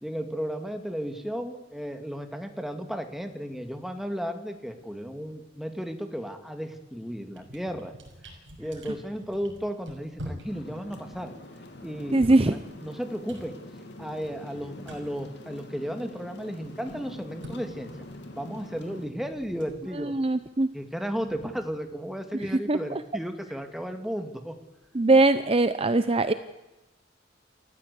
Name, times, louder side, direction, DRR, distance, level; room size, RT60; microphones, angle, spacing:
voice 1, 0.0-7.9 8.6-11.3 11.8-13.6 14.0-17.9 18.3-20.1 20.7-24.5, equal, ahead, 6 dB, 2.1 m, -34 dB
sound 1, 6.7-6.9 7.2-16.1 16.4-22.3, equal, 75° right, 6.0 m, -47 dB
sound 2, 10.5-19.1, left 1 dB, 65° left, 2.9 m, -44 dB
voice 2, 12.1-12.6 20.0-20.7 22.5-23.0 24.9-26.3, right 2 dB, 30° right, 11 dB, 0.7 m, -22 dB
29.0 x 14.5 x 8.3 m, 1.0 s
head